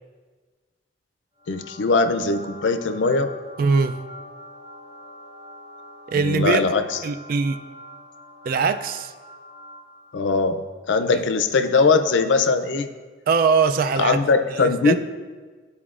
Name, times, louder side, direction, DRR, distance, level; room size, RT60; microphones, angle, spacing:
sound 1, 1.4-10.2, left 1 dB, 35° right, 1.1 m, -43 dB
voice 1, 1.5-3.3 6.1-7.0 10.1-12.9 14.0-14.9, left 4 dB, 85° left, 9 dB, 0.5 m, -21 dB
voice 2, 3.6-4.0 6.1-6.6 7.0-7.6 8.4-9.1 11.1-11.2 13.3-14.2 14.6-14.9, right 5 dB, 50° right, 10 dB, 0.3 m, -21 dB
12.0 x 4.1 x 2.4 m, 1.4 s
head